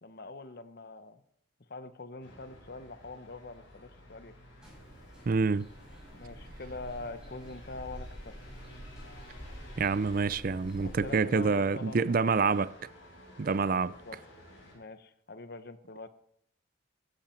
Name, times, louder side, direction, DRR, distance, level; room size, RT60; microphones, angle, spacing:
voice 1, 0.0-1.2 1.7-4.3 6.1-8.3 10.8-12.5 13.7-14.2 14.7-16.1, left 3 dB, 50° left, 0.9 m, -44 dB
sound 1, 2.2-14.8, equal, 70° left, 6.9 m, -53 dB
sound 2, 4.6-11.0, equal, 5° right, 6.5 m, -48 dB
voice 2, 5.3-5.7 9.8-12.7 13.4-13.9, right 4 dB, 45° right, 0.4 m, -27 dB
16.5 x 13.0 x 4.5 m
head